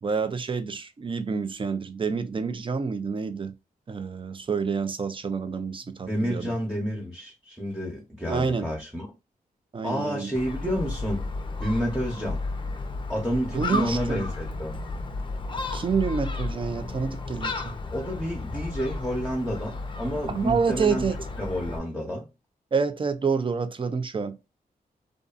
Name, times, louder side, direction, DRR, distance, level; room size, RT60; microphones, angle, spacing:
voice 1, 0.0-3.5 3.9-6.5 8.3-8.7 9.7-10.3 13.5-14.2 15.7-17.7 20.3-21.2 22.7-24.4, right 5 dB, 35° right, 0.5 m, -28 dB
voice 2, 6.1-9.1 9.8-11.3 11.6-12.4 13.1-14.8 17.9-21.1 21.4-22.3, equal, ahead, 0.9 m, -29 dB
Gull seagull, 10.3-21.8, left 3 dB, 30° left, 0.5 m, -33 dB
2.6 x 2.4 x 2.4 m
cardioid pair, 60°, 16 cm